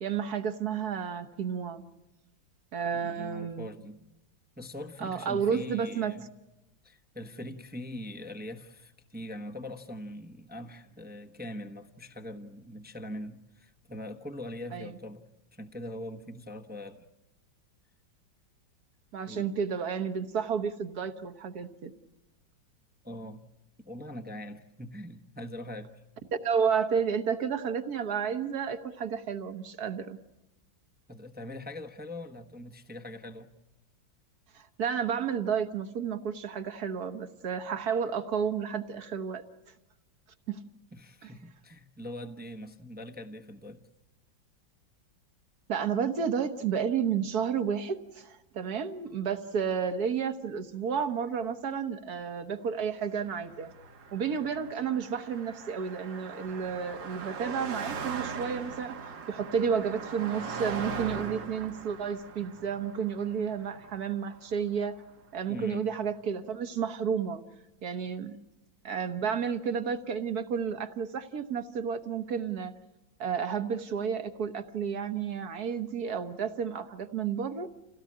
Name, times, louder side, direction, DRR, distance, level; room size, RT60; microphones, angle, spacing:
voice 1, 0.0-1.8 2.7-3.7 5.0-6.1 14.7-15.0 19.1-21.9 26.4-30.2 34.8-39.4 40.5-40.6 41.2-41.3 45.7-53.7 54.1-59.0 59.3-65.0 65.3-67.4 67.8-68.4 68.8-72.7 73.2-77.7, right 7 dB, 55° right, 9 dB, 1.6 m, -31 dB
voice 2, 2.9-4.0 4.6-6.3 6.8-15.3 15.5-17.0 19.3-19.5 23.0-23.4 23.8-25.9 31.1-33.5 40.9-43.8 65.5-65.9, left 1 dB, 10° right, 4 dB, 0.7 m, -42 dB
Car passing by, 53.2-64.7, right 5 dB, 70° right, 2.1 m, -40 dB
28.0 x 17.0 x 8.6 m, 0.99 s
omnidirectional pair, 2.0 m